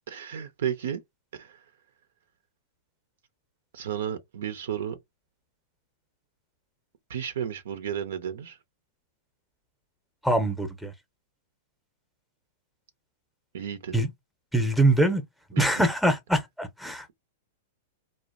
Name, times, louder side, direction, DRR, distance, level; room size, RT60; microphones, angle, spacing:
voice 1, 0.1-1.0 1.3-1.6 3.7-5.0 7.1-8.6 13.5-14.0 15.5-15.8, right 9 dB, 75° right, 0.6 m, -33 dB
voice 2, 10.2-10.9 13.9-14.1 14.5-15.2 15.6-17.1, right 1 dB, ahead, 0.6 m, -23 dB
2.5 x 2.0 x 2.4 m
hypercardioid pair, 120°, 0 cm